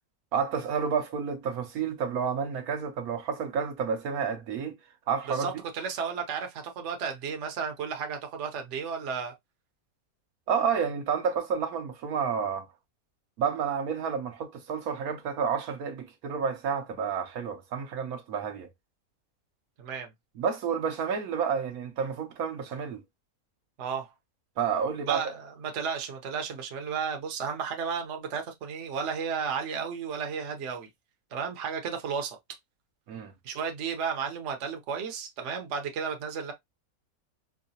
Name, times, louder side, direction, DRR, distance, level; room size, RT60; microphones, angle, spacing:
voice 1, 0.3-4.7 5.1-5.5 10.5-12.7 13.4-18.7 20.4-23.0 24.6-25.2 33.1-33.3, right 6 dB, 75° right, 1.2 m, -30 dB
voice 2, 5.3-9.3 19.8-20.1 23.8-24.1 25.1-30.9 31.3-32.4 33.4-36.5, right 6 dB, 60° right, 1.0 m, -33 dB
4.8 x 2.2 x 2.7 m
omnidirectional pair, 1.6 m